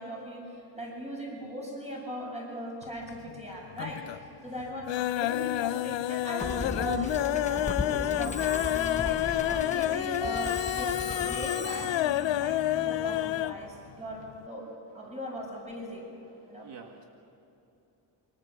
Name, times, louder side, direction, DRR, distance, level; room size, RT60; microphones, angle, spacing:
voice 1, 0.0-8.5 8.8-14.7 14.9-16.0 16.5-16.7, equal, 15° right, -2 dB, 7.9 m, -39 dB
Kalyani - Kampitam, 2.8-3.4 3.7-4.3 4.6-13.6 13.9-14.0 14.3-14.4, left 14 dB, 80° left, 0.6 m, -29 dB
Musical instrument, 6.4-13.7, left 3 dB, 15° left, 0.9 m, -37 dB
voice 2, 16.3-17.0, right 6 dB, 70° right, 2 dB, 2.1 m, -48 dB
27.0 x 25.0 x 7.5 m, 2.9 s
wide cardioid pair, 180°, 44 cm